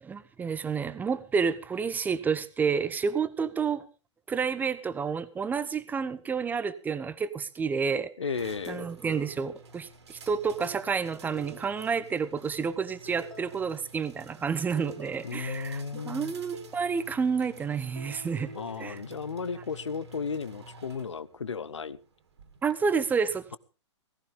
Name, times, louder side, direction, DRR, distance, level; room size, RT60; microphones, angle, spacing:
voice 1, 0.0-3.8 4.3-8.1 8.7-18.5 18.8-19.0 22.6-23.6, right 5 dB, 10° right, 16 dB, 0.7 m, -30 dB
voice 2, 8.2-8.9 15.2-16.3 18.5-22.0, left 5 dB, 70° left, 17 dB, 0.8 m, -34 dB
sound 1, 8.3-22.7, right 1 dB, 60° right, 2.4 m, -51 dB
sound 2, 9.1-9.9 10.6-12.2 12.7-13.9 14.4-16.9 18.0-19.8, right 1 dB, 80° right, 1.9 m, -47 dB
17.5 x 16.0 x 3.5 m, 0.34 s
figure-of-eight pair, 110°, 15 cm